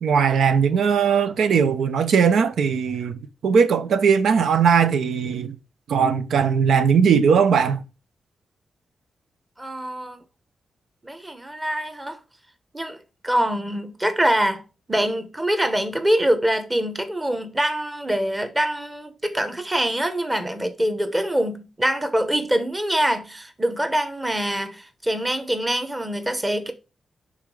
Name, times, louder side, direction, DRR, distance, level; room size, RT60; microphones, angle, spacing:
voice 1, 0.0-5.6 5.9-7.8, right 6 dB, 85° right, 0.7 m, -19 dB
voice 2, 9.6-10.2 11.0-12.2 12.7-26.7, right 1 dB, 10° right, 0.9 m, -24 dB
5.7 x 3.6 x 4.8 m
wide cardioid pair, 170°, 0 cm